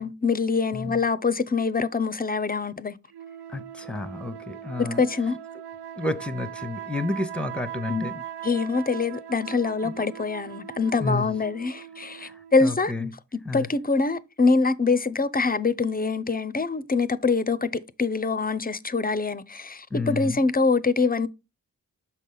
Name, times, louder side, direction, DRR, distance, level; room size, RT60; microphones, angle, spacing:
voice 1, 0.0-3.0 4.8-5.4 7.9-8.1 8.4-13.1 13.5-17.7 18.0-21.3, left 4 dB, 25° left, 0.5 m, -24 dB
sound 1, 3.1-12.8, right 10 dB, 80° right, 0.7 m, -40 dB
voice 2, 3.5-5.0 6.0-8.1 9.8-9.9 11.0-11.4 12.2-13.1 13.4-13.7 19.9-20.4, left 2 dB, 5° left, 0.9 m, -31 dB
6.0 x 4.1 x 3.8 m
supercardioid pair, 40°, 39 cm